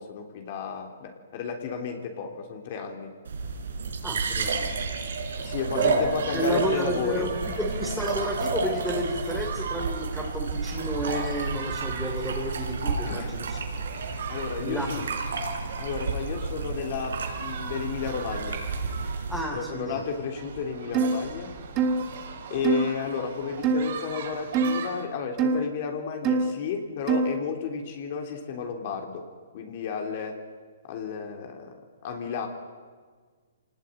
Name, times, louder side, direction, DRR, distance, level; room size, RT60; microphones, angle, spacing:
voice 1, 0.0-3.1 5.4-7.3 13.0-13.3 14.3-15.1 15.8-18.6 19.5-21.5 22.5-29.2 29.5-30.4 30.9-31.7 32.0-32.5, left 6 dB, 45° left, 3 dB, 3.6 m, -32 dB
sound 1, 3.3-19.4, right 4 dB, 75° right, 4.6 m, -31 dB
voice 2, 4.0-4.8 5.7-6.1 6.3-13.6 14.6-15.0 19.3-20.0, equal, ahead, -2 dB, 3.4 m, -31 dB
sound 2, 5.4-25.0, right 6 dB, 55° right, 5.8 m, -40 dB
sound 3, 20.9-21.2 21.8-22.0 22.6-22.9 23.6-23.9 24.5-24.8 25.4-25.6 26.2-26.5 27.1-27.4, right 4 dB, 25° right, 1.9 m, -23 dB
24.5 x 19.0 x 9.3 m, 1.5 s
hypercardioid pair, 150°, 0 cm